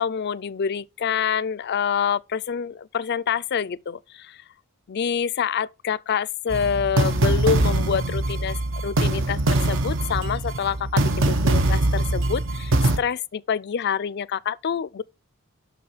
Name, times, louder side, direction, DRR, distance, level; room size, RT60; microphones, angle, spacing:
voice 1, 0.0-4.4 4.9-15.0, left 7 dB, 50° left, 0.4 m, -27 dB
sound 1, 6.5-13.0, right 2 dB, 60° right, 0.8 m, -22 dB
7.0 x 6.2 x 5.0 m
head